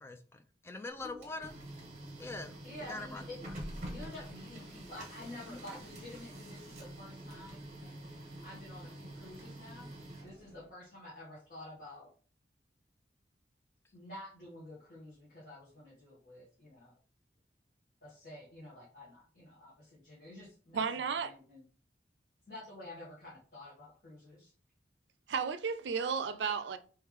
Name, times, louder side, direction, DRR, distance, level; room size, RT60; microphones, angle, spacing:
voice 1, 0.0-1.5 2.2-3.5 5.5-5.6, left 2 dB, 15° left, 0.3 m, -44 dB
Printer, 0.9-10.7, right 1 dB, 40° right, 1.3 m, -47 dB
voice 2, 2.6-3.4 3.9-7.9 8.4-9.9 10.2-12.1 13.9-16.9 18.0-21.6 22.5-24.5, left 1 dB, 50° left, 1.6 m, -50 dB
voice 3, 20.7-21.3 25.3-26.8, right 6 dB, 80° right, 0.4 m, -33 dB
3.2 x 3.1 x 3.6 m
head